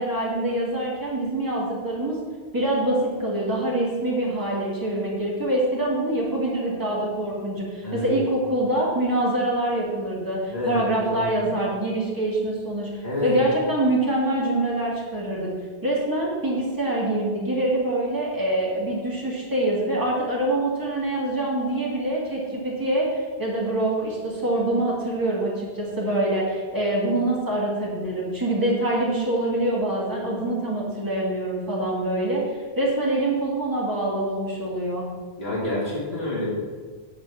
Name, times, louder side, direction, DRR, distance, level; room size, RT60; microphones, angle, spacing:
voice 1, 0.0-2.2 2.5-12.9 13.2-15.5 15.8-35.1, right 1 dB, 20° right, -5 dB, 2.2 m, -25 dB
voice 2, 10.5-11.2 13.0-13.4 35.4-36.5, left 2 dB, 80° left, -6 dB, 2.9 m, -28 dB
7.8 x 4.3 x 7.0 m, 1.5 s
omnidirectional pair, 1.0 m